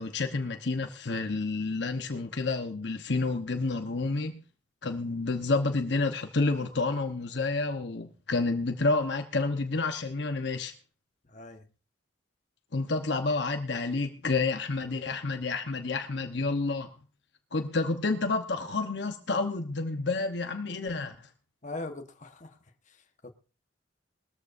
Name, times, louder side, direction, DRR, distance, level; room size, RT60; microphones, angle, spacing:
voice 1, 0.0-4.4 4.8-10.7 12.7-16.9 17.5-21.3, left 3 dB, 65° left, 1.0 m, -29 dB
voice 2, 11.3-11.7 21.6-22.6 22.9-23.3, left 2 dB, 40° left, 1.3 m, -41 dB
20.5 x 13.5 x 2.6 m
head